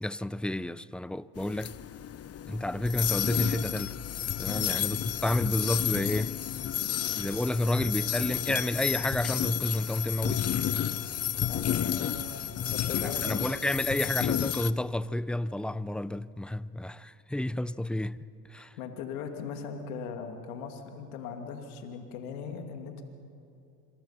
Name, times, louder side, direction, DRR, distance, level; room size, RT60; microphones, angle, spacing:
voice 1, 0.0-1.7 2.5-4.0 4.4-6.4 7.2-10.6 13.0-18.2 18.5-18.8, left 1 dB, ahead, 0.5 m, -30 dB
sound 1, 1.4-14.7, left 10 dB, 35° left, 0.9 m, -31 dB
voice 2, 11.4-12.2 12.7-13.6 18.6-23.0, left 6 dB, 80° left, 2.5 m, -39 dB
27.0 x 24.0 x 5.8 m
hypercardioid pair, 75°, 42 cm